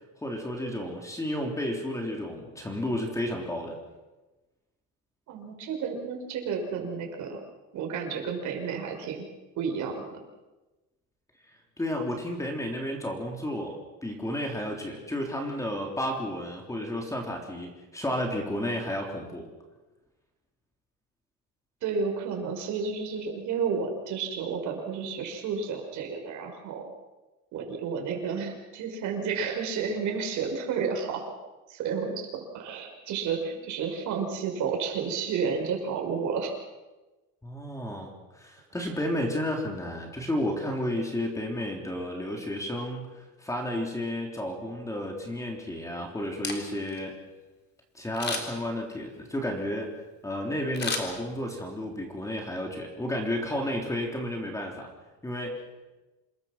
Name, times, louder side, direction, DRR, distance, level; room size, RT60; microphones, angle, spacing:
voice 1, 0.2-3.8 11.8-19.5 37.4-47.2 47.9-49.9 50.2-54.9 55.2-55.6, left 1 dB, 10° left, 1 dB, 3.7 m, -32 dB
voice 2, 5.3-7.4 7.7-9.3 9.6-10.2 21.8-26.8 27.5-31.3 31.7-36.5, right 5 dB, 55° right, 3 dB, 5.8 m, -31 dB
Camera, 46.3-47.0 48.1-48.7 50.7-51.7 52.1-52.2, left 4 dB, 30° left, 3.7 m, -34 dB
28.0 x 21.5 x 6.0 m, 1.1 s
cardioid pair, 155°, 34 cm